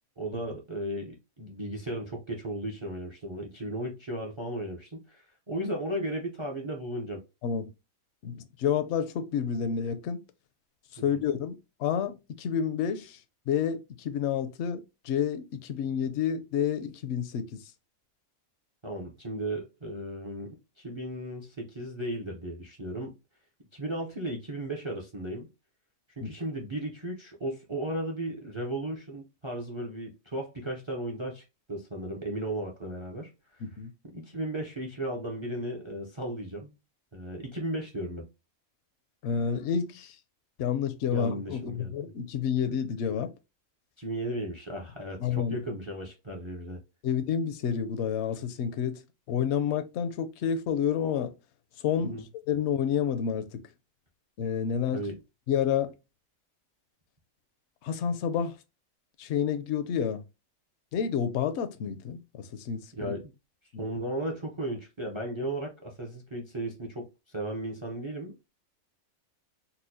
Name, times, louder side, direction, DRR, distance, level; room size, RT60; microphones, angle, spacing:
voice 1, 0.2-7.2 11.1-11.2 18.8-23.2 23.7-25.5 26.2-33.6 34.1-36.7 37.1-38.3 41.1-42.0 44.0-46.8 52.0-52.2 54.9-55.2 62.9-63.2 63.8-68.3, right 1 dB, 40° right, 0.4 m, -35 dB
voice 2, 8.2-10.2 10.9-13.2 13.5-17.5 26.2-26.3 33.6-33.9 39.2-40.1 40.6-43.3 45.2-45.6 47.0-49.0 49.3-51.3 51.8-53.6 54.4-55.0 55.5-55.9 57.8-58.5 59.2-60.2 60.9-62.8 63.7-63.9, left 8 dB, 65° left, 0.7 m, -29 dB
4.2 x 2.2 x 2.6 m
omnidirectional pair, 1.5 m